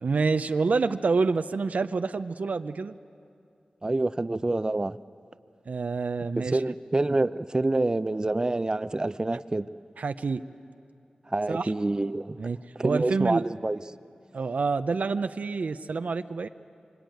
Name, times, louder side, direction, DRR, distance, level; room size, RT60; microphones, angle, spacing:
voice 1, 0.0-3.0 5.7-6.6 10.0-10.4 11.5-11.7 12.4-12.6 12.8-13.4 14.3-16.5, right 4 dB, 80° right, 9 dB, 0.6 m, -27 dB
voice 2, 3.8-5.0 6.4-9.7 11.3-12.4 12.8-13.8, right 2 dB, 30° right, 14 dB, 0.6 m, -27 dB
25.5 x 24.5 x 9.2 m, 2.5 s
wide cardioid pair, 75°, 3 cm